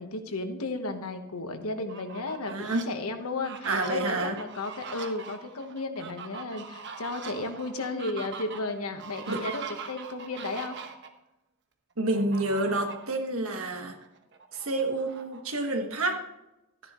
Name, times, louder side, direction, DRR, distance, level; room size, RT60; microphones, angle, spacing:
voice 1, 0.0-10.8, left 2 dB, 80° left, 7 dB, 1.2 m, -34 dB
Fowl, 1.7-2.8 3.3-11.1 12.1-13.1 13.6-13.7 14.0-15.8, right 5 dB, 55° right, 1.1 m, -42 dB
voice 2, 2.4-2.9 3.6-4.4 9.3-9.5 12.0-14.0 14.5-16.2, right 2 dB, 70° right, 4 dB, 1.5 m, -29 dB
13.0 x 10.5 x 3.1 m, 0.94 s
head